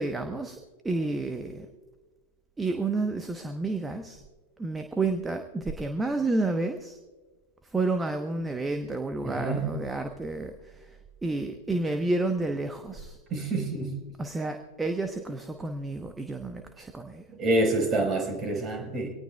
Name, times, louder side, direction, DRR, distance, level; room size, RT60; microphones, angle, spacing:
voice 1, 0.0-1.7 2.6-4.2 4.6-7.0 7.6-13.2 14.2-17.3, right 2 dB, 10° right, 6 dB, 1.0 m, -30 dB
voice 2, 9.2-9.6 13.3-14.0 17.3-19.1, right 2 dB, 25° right, 3 dB, 4.6 m, -27 dB
25.0 x 18.5 x 2.3 m, 1.3 s
figure-of-eight pair, 90°, 0 cm